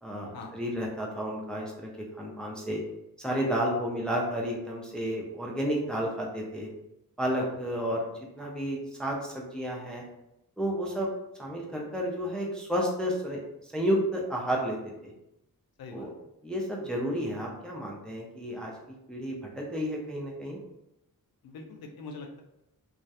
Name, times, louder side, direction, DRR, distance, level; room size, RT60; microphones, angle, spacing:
voice 1, 0.0-2.8 3.2-6.7 7.2-10.0 10.6-11.1 11.4-15.1 15.9-16.1 16.4-20.6, equal, ahead, -2 dB, 0.4 m, -32 dB
voice 2, 15.8-16.1 21.4-22.4, left 3 dB, 90° left, 2 dB, 0.5 m, -43 dB
2.3 x 2.1 x 2.7 m, 0.86 s
wide cardioid pair, 125°, 35 cm